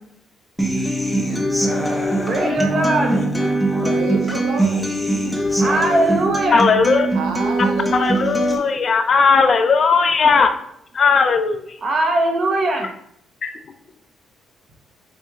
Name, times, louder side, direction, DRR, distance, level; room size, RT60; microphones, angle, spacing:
Human voice / Acoustic guitar, 0.6-8.6, right 1 dB, ahead, 0.6 m, -21 dB
voice 1, 2.3-3.3 3.6-3.8 5.6-6.7 11.8-12.9, right 2 dB, 45° right, 2 dB, 0.8 m, -20 dB
voice 2, 3.8-4.9 7.1-8.2, right 4 dB, 90° right, 4 dB, 0.6 m, -29 dB
voice 3, 6.5-7.1 7.9-10.5 10.9-11.8 13.4-13.6, left 5 dB, 50° left, 7 dB, 0.4 m, -17 dB
4.2 x 2.8 x 2.3 m, 0.71 s
cardioid pair, 90°, 0 cm